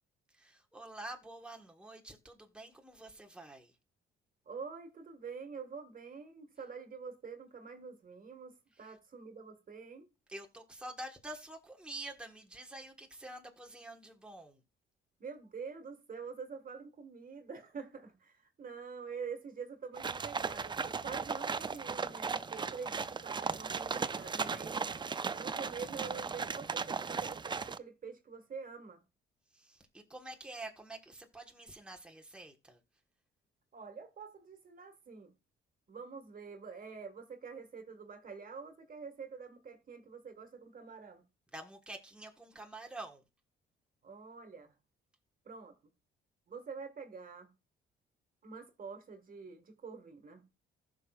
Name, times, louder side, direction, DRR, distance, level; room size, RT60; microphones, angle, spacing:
voice 1, 0.3-3.7 8.8-8.9 10.3-14.6 29.5-32.8 41.5-43.2, right 2 dB, 5° right, 1.4 m, -47 dB
voice 2, 4.4-10.1 15.2-24.8 25.0-29.0 33.7-35.3 35.9-41.2 44.0-44.7 45.4-45.8 46.5-47.5 48.4-50.4, right 5 dB, 45° right, 1.6 m, -46 dB
sound 1, 20.0-27.8, right 5 dB, 25° right, 0.4 m, -37 dB
15.5 x 6.2 x 2.4 m
cardioid pair, 90°, 20 cm